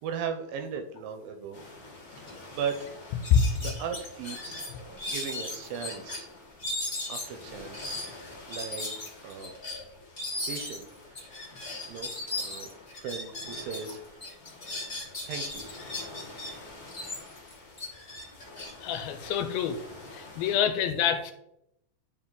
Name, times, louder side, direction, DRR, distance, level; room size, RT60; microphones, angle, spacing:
voice 1, 0.0-1.6 2.2-2.9 3.6-4.7 5.1-6.3 7.1-8.0 8.5-8.9 9.2-9.5 10.5-10.9 11.1-11.2 11.9-12.1 12.4-14.2 15.3-15.6, right 7 dB, 80° right, 6 dB, 2.3 m, -37 dB
sound 1, 1.5-20.6, left 2 dB, 35° left, 1.5 m, -48 dB
sound 2, 2.3-2.4 2.7-2.8 3.2-6.2 6.6-13.9 14.2-16.5 16.9-19.8, left 2 dB, 55° left, 0.6 m, -37 dB
voice 2, 18.8-19.8 20.1-21.3, left 8 dB, 80° left, 8 dB, 2.3 m, -26 dB
9.6 x 4.3 x 3.9 m, 0.79 s
omnidirectional pair, 4.5 m